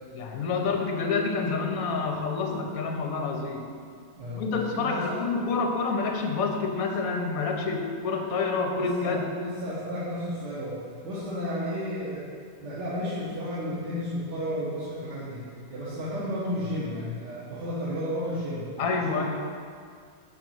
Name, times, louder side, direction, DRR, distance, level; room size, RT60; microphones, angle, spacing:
voice 1, 0.1-3.7 4.3-9.2 18.8-19.2, left 4 dB, 65° left, 2 dB, 1.1 m, -28 dB
voice 2, 4.8-5.2 8.8-10.8 11.0-12.3 12.6-19.2, equal, 85° right, -10 dB, 1.9 m, -32 dB
6.1 x 4.0 x 6.3 m, 2.2 s
omnidirectional pair, 1.8 m